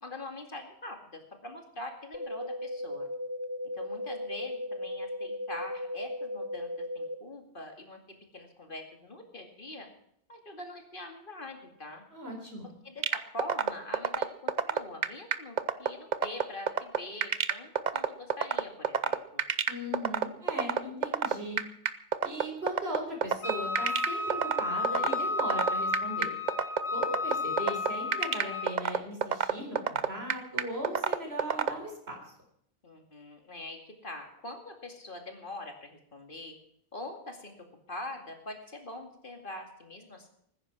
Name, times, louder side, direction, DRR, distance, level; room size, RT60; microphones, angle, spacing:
voice 1, 0.0-3.1 3.7-6.7 6.9-8.0 8.3-9.9 10.3-12.0 12.8-19.4 32.8-36.6 36.9-37.5 37.9-40.3, left 2 dB, 55° left, 3 dB, 2.5 m, -43 dB
sound 1, 2.1-7.1, left 1 dB, 30° left, 0.6 m, -36 dB
voice 2, 12.1-12.7 19.7-21.6 22.2-26.3 26.9-32.2, equal, 80° right, 2 dB, 4.5 m, -38 dB
sound 2, 13.0-31.7, right 7 dB, 50° right, 0.8 m, -27 dB
Wind instrument woodwind instrument, 23.4-28.8, left 3 dB, 85° left, 1.9 m, -32 dB
19.5 x 10.0 x 6.0 m, 0.71 s
omnidirectional pair, 1.0 m